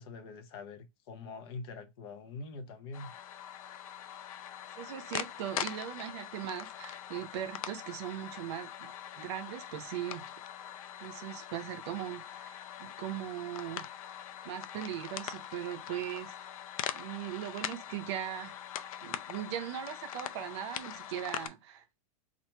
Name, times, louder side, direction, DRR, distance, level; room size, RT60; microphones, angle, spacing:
voice 1, 0.0-3.1, left 3 dB, 45° left, 0.7 m, -44 dB
sound 1, 2.9-21.5, left 10 dB, 85° left, 0.4 m, -42 dB
voice 2, 4.8-10.3 11.0-13.9 14.4-16.3 16.9-18.5 19.0-22.0, right 11 dB, 50° right, 0.5 m, -39 dB
2.9 x 2.4 x 4.3 m
supercardioid pair, 170°, 18 cm